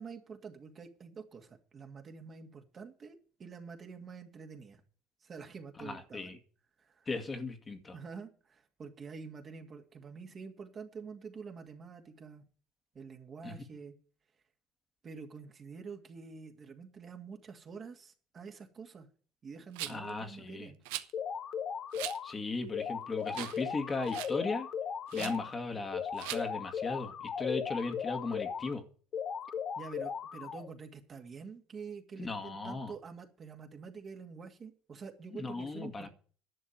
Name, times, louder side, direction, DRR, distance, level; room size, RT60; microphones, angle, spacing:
voice 1, 0.0-4.8 5.2-6.4 6.8-7.1 7.9-12.4 12.9-14.0 15.0-19.1 19.4-20.8 25.2-25.4 29.8-36.1, right 5 dB, 40° right, 4 dB, 2.3 m, -47 dB
voice 2, 5.8-6.4 7.1-7.9 13.4-13.6 19.9-20.7 22.2-24.7 25.1-28.8 32.2-32.9 35.4-36.1, left 3 dB, 25° left, 6 dB, 2.0 m, -37 dB
Rattle, 19.8-20.1 20.9-21.1 21.9-22.2 22.7-22.8 23.3-23.6 23.9-24.4 25.1-25.4 26.2-26.4, right 15 dB, 85° right, 0.8 m, -40 dB
sound 1, 21.1-22.3 22.7-25.5 25.9-28.7 29.1-30.7, left 7 dB, 50° left, 1.3 m, -37 dB
11.0 x 6.6 x 8.9 m, 0.42 s
supercardioid pair, 85°, 0 cm